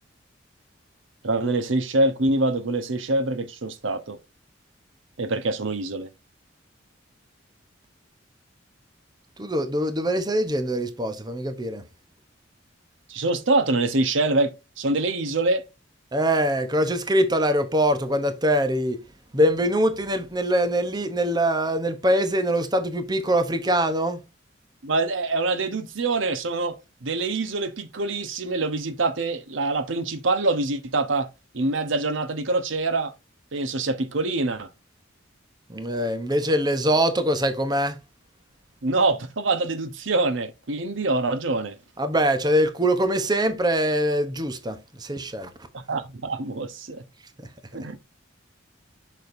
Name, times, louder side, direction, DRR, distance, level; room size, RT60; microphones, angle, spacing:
voice 1, 1.2-4.2 5.2-6.1 13.1-15.6 24.8-26.8 27.0-31.3 31.5-33.1 33.5-34.7 38.8-41.8 45.7-47.0 47.7-48.0, right 2 dB, 75° right, 0.9 m, -25 dB
voice 2, 9.4-11.8 16.1-19.0 19.3-24.2 35.7-38.0 42.0-45.5, equal, 20° right, 0.8 m, -23 dB
6.7 x 6.3 x 2.6 m
head